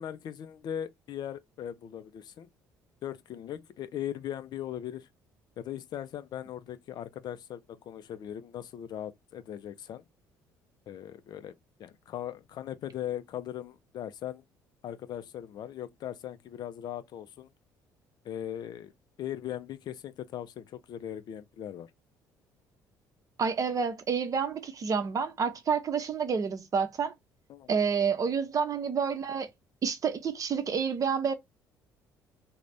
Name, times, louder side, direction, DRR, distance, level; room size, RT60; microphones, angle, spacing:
voice 1, 0.0-2.5 3.0-5.1 5.6-10.0 10.9-14.4 14.8-17.5 18.2-18.9 19.2-21.9 27.5-27.7, left 10 dB, 50° left, 0.4 m, -39 dB
voice 2, 23.4-27.1 27.7-29.5 29.8-31.3, right 6 dB, 40° right, 0.6 m, -29 dB
2.5 x 2.1 x 3.2 m
hypercardioid pair, 55°, 9 cm